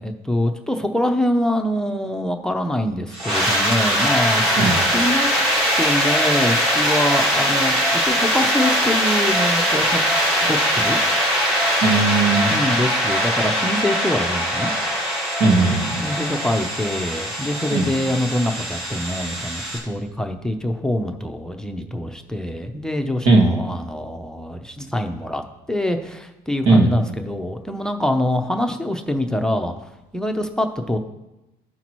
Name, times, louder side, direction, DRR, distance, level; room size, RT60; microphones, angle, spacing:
voice 1, 0.0-4.6 4.9-5.4 5.8-10.0 10.4-11.0 12.5-14.7 16.0-25.4 25.7-29.7 30.1-31.0, left 1 dB, 5° left, 6 dB, 0.6 m, -24 dB
sound 1, 3.1-19.8, equal, 45° right, 3.5 m, -21 dB
voice 2, 11.8-12.6 15.4-15.8 17.7-17.9 23.3-23.5 26.7-26.9, right 3 dB, 85° right, 2 dB, 1.7 m, -16 dB
14.0 x 5.7 x 3.0 m, 0.99 s
cardioid pair, 110°, 17 cm